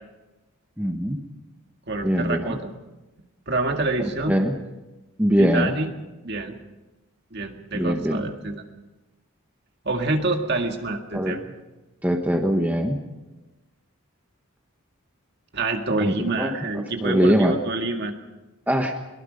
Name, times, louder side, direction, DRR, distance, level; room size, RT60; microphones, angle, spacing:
voice 1, 0.8-1.2 2.0-2.6 4.3-4.5 5.2-5.8 7.7-8.3 11.1-11.4 12.0-13.0 16.0-17.6 18.7-18.9, equal, 5° right, 3 dB, 1.3 m, -22 dB
voice 2, 1.9-2.7 3.5-4.3 5.4-5.9 6.2-6.6 7.3-8.6 9.8-11.4 15.5-18.1, right 3 dB, 50° right, 4 dB, 2.0 m, -27 dB
22.5 x 22.5 x 5.3 m, 1.1 s
head